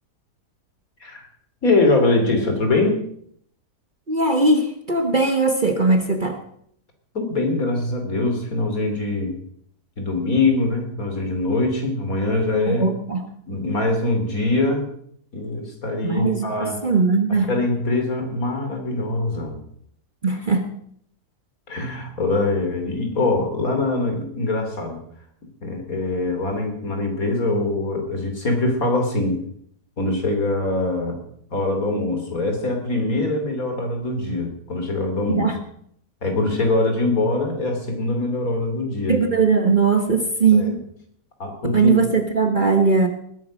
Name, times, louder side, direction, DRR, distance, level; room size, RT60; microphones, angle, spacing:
voice 1, 1.6-3.0 7.1-9.4 10.0-12.9 13.5-15.0 15.3-16.8 17.3-19.6 21.7-25.0 25.6-29.4 30.0-31.2 31.5-35.5 36.2-39.2 40.5-40.7 41.4-41.9, left 2 dB, 60° left, 5 dB, 3.5 m, -23 dB
voice 2, 4.1-6.4 12.7-13.3 16.0-17.5 20.2-20.7 35.3-35.6 39.1-40.8 41.7-43.1, right 4 dB, 35° right, 6 dB, 1.2 m, -19 dB
19.5 x 9.6 x 6.3 m, 0.67 s
omnidirectional pair, 1.7 m